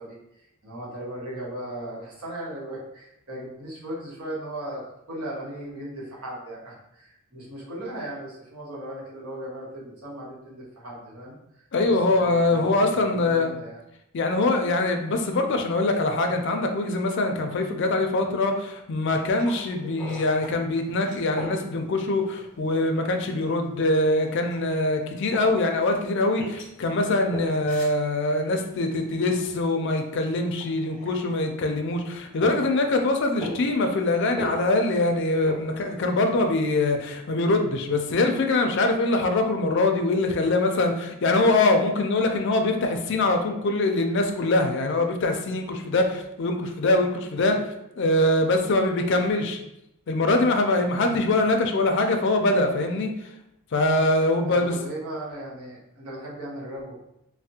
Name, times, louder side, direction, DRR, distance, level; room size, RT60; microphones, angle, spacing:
voice 1, 0.0-4.8 5.1-13.8 20.0-20.2 33.5-33.7 51.0-51.4 54.5-57.0, right 1 dB, 80° right, -5 dB, 1.0 m, -37 dB
voice 2, 11.7-13.5 14.1-47.6 48.0-49.6 50.1-53.1 53.7-54.7, left 2 dB, 50° left, 4 dB, 0.4 m, -23 dB
sound 1, 18.9-36.7, equal, 5° left, 0.7 m, -42 dB
3.3 x 2.1 x 2.7 m, 0.83 s
head